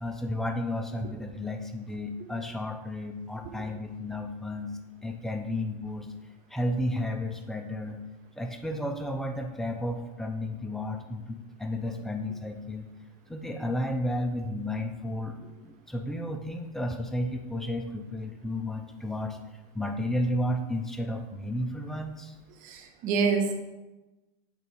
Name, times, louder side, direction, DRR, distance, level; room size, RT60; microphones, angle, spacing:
voice 1, 0.0-4.7 5.0-6.1 6.5-8.0 8.4-12.9 13.3-15.3 15.6-19.4 19.7-22.3, left 1 dB, ahead, 4 dB, 0.5 m, -32 dB
voice 2, 22.6-23.6, right 5 dB, 40° right, 5 dB, 0.9 m, -27 dB
8.4 x 3.7 x 4.7 m, 1.1 s
supercardioid pair, 135°, 20 cm